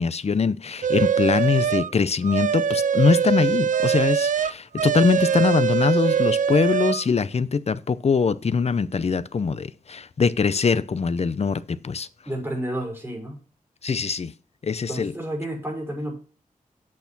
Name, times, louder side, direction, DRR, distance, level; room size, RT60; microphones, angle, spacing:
voice 1, 0.0-12.1 13.8-14.3 14.6-15.1, left 5 dB, 45° left, 0.6 m, -22 dB
sound 1, 0.8-1.9 2.2-7.0, right 7 dB, 65° right, 0.4 m, -22 dB
voice 2, 12.3-13.4 14.9-16.2, right 1 dB, 15° right, 5.8 m, -31 dB
8.4 x 6.6 x 6.0 m
wide cardioid pair, 85°, 14 cm